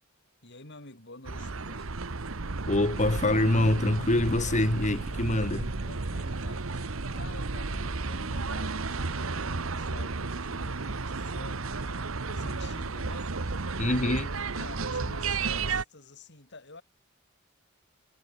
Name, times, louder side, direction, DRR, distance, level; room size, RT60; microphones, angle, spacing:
voice 1, 0.4-1.9 5.8-16.8, left 3 dB, 60° left, 6.5 m, -49 dB
sound 1, 1.2-15.8, right 3 dB, 85° right, 1.3 m, -33 dB
voice 2, 2.7-5.7 13.8-14.3, left 1 dB, 35° left, 2.1 m, -25 dB
head